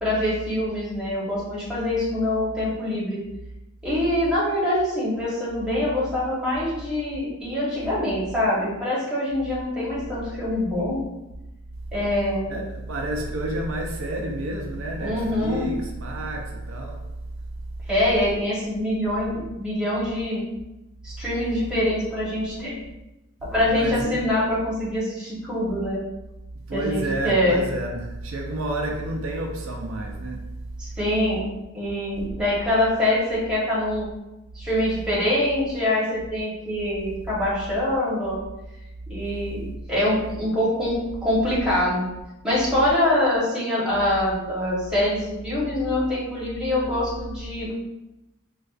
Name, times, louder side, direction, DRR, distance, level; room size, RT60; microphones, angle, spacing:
voice 1, 0.0-3.2 3.8-11.0 11.9-12.6 15.0-15.7 17.9-20.4 21.0-22.8 23.4-26.0 26.7-27.6 30.8-31.5 31.7-34.1 34.5-38.4 39.1-42.0 42.4-47.7, left 1 dB, 5° right, -8 dB, 1.0 m, -24 dB
voice 2, 12.5-17.0 23.6-24.2 26.7-30.6, right 1 dB, 70° right, 1 dB, 0.5 m, -30 dB
4.2 x 2.3 x 2.4 m, 0.97 s
head